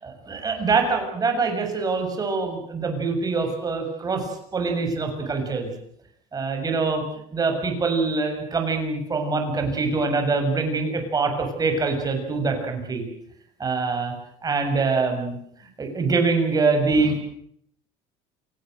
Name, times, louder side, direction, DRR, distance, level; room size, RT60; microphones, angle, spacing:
voice 1, 0.0-4.2 4.5-5.7 6.3-7.0 7.3-13.0 13.6-14.1 14.4-15.4 15.8-17.2, right 4 dB, 25° right, 4 dB, 7.0 m, -24 dB
28.5 x 18.0 x 7.9 m, 0.69 s
cardioid pair, 120°, 15 cm